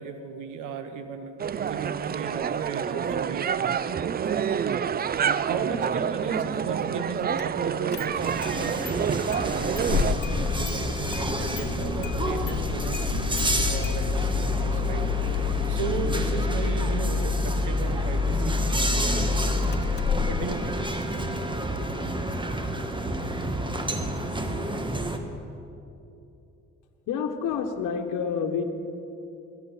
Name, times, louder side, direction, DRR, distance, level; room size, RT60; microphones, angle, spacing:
voice 1, 0.0-4.5 5.5-8.8 9.4-18.6 18.9-19.4 19.7-20.8, right 6 dB, 90° right, 9 dB, 1.2 m, -36 dB
sound 1, 1.4-10.1, right 7 dB, 30° right, 0.4 m, -28 dB
Engine starting, 7.4-7.5 7.9-8.5 8.9-9.0 9.3-21.2, left 6 dB, 35° left, 0.4 m, -28 dB
sound 2, 8.2-25.2, right 1 dB, 15° right, 1.3 m, -30 dB
voice 2, 27.1-28.6, left 6 dB, 80° left, 4 dB, 1.2 m, -28 dB
18.0 x 11.0 x 5.7 m, 2.7 s
cardioid pair, 90°, 30 cm